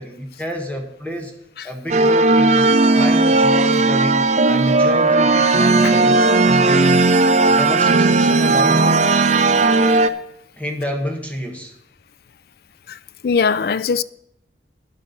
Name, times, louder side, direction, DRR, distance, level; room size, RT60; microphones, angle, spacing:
voice 1, 0.0-1.3 1.6-2.7 2.9-7.1 7.4-9.0 10.6-11.7, equal, 10° left, 1.2 m, -28 dB
sound 1, 1.9-10.1, right 3 dB, 40° right, 0.6 m, -15 dB
voice 2, 13.2-14.0, left 5 dB, 60° left, 0.4 m, -20 dB
10.5 x 8.0 x 6.9 m
head